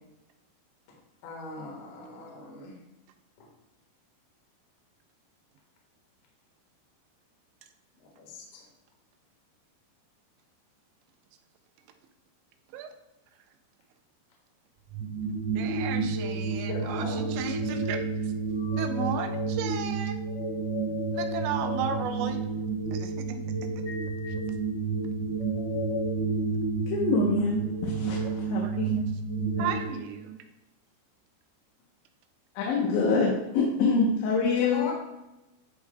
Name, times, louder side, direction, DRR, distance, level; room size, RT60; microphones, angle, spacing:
voice 1, 1.2-2.8 3.4-3.5 8.0-8.6 16.7-17.2 34.6-34.9, left 2 dB, 60° left, -2 dB, 2.6 m, -38 dB
sound 1, 14.9-29.7, right 4 dB, 25° right, 0.9 m, -30 dB
voice 2, 15.5-18.3 18.8-20.2 21.1-22.4 22.9-23.4 23.8-23.9 24.3-24.4 28.2-28.9 29.6-30.4, right 7 dB, 85° right, 6 dB, 3.0 m, -35 dB
voice 3, 26.9-28.2 28.5-28.9 29.6-29.7 32.6-34.9, left 4 dB, 85° left, -3 dB, 3.4 m, -25 dB
13.5 x 4.7 x 2.3 m, 0.96 s
omnidirectional pair, 5.2 m